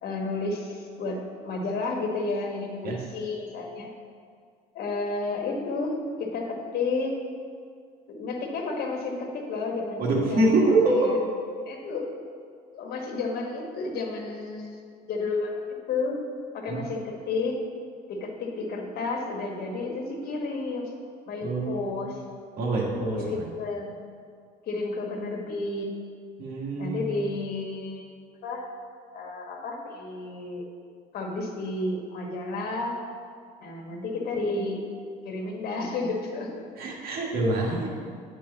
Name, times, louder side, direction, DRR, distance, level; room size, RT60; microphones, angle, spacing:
voice 1, 0.0-3.9 4.7-7.2 8.1-11.2 11.7-12.1 12.7-14.7 15.1-15.6 15.9-16.2 16.5-17.6 18.1-20.9 21.3-22.2 23.1-23.9 24.7-25.9 26.8-28.1 28.4-28.6 29.1-30.6 31.1-33.0 33.6-34.8 35.2-36.5, left 3 dB, 65° left, 1 dB, 1.3 m, -31 dB
voice 2, 10.0-11.1 16.7-16.8 21.4-22.0 22.6-23.4 26.4-27.2 36.8-37.9, right 2 dB, 60° right, -3 dB, 1.8 m, -25 dB
9.4 x 4.7 x 4.0 m, 2.1 s
cardioid pair, 110°, 17 cm